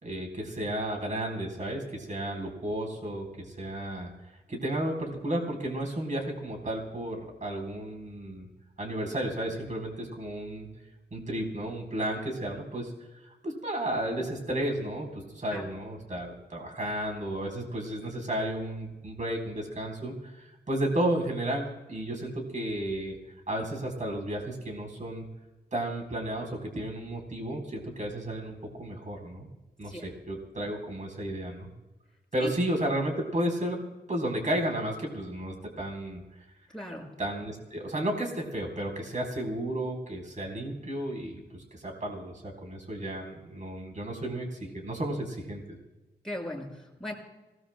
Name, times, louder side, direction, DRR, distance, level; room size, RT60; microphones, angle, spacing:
voice 1, 0.0-4.1 4.5-8.5 8.8-10.7 11.1-12.9 13.4-23.2 23.5-25.3 25.7-29.5 29.8-31.7 32.3-36.2 37.2-45.8, right 1 dB, 45° right, 1 dB, 4.1 m, -33 dB
voice 2, 36.7-37.1 46.2-47.1, left 1 dB, 5° left, -2 dB, 6.0 m, -37 dB
27.0 x 18.5 x 2.2 m, 1.1 s
wide cardioid pair, 90°, 17 cm